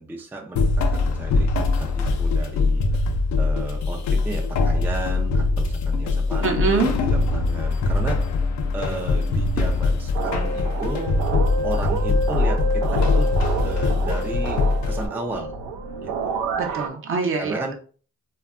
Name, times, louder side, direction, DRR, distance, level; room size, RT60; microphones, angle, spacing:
voice 1, 0.0-3.1 3.4-8.4 8.7-11.3 11.6-13.3 13.6-14.6 14.9-15.5 16.0-16.5 17.3-17.7, right 2 dB, 5° right, 0 dB, 0.4 m, -34 dB
sound 1, 0.6-15.1, left 3 dB, 70° left, 0.5 m, -22 dB
voice 2, 6.4-6.9 16.6-17.7, right 4 dB, 45° right, 2 dB, 0.7 m, -24 dB
sound 2, 10.1-16.9, right 4 dB, 80° right, 0.4 m, -28 dB
2.7 x 2.3 x 2.4 m, 0.41 s
cardioid pair, 90°, 30 cm